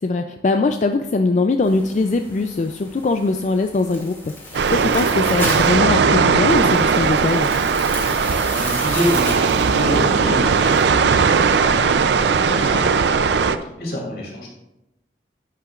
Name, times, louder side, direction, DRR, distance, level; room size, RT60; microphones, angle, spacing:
voice 1, 0.0-7.5, left 3 dB, 40° left, 7 dB, 0.3 m, -21 dB
sound 1, 1.6-10.8, left 1 dB, 15° left, 2.2 m, -35 dB
sound 2, 4.5-13.6, right 5 dB, 80° right, 0.5 m, -18 dB
voice 2, 8.2-14.5, left 1 dB, 60° left, -2 dB, 2.7 m, -28 dB
10.5 x 8.8 x 2.4 m, 0.89 s
head